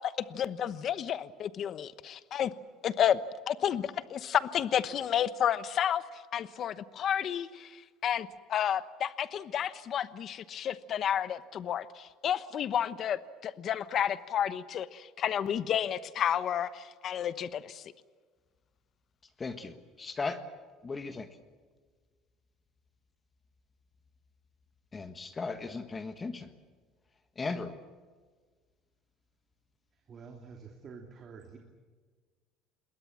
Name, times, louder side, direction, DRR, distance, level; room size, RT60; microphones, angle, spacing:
voice 1, 0.0-2.5 2.8-3.2 3.5-17.8, left 9 dB, 40° left, 14 dB, 1.0 m, -31 dB
voice 2, 19.4-20.4 20.8-21.3 24.9-26.5 27.4-27.7, left 4 dB, 20° left, 9 dB, 1.5 m, -37 dB
voice 3, 29.9-31.6, right 5 dB, 30° right, 2 dB, 2.9 m, -48 dB
27.5 x 22.0 x 7.5 m, 1.5 s
cardioid pair, 155°, 0 cm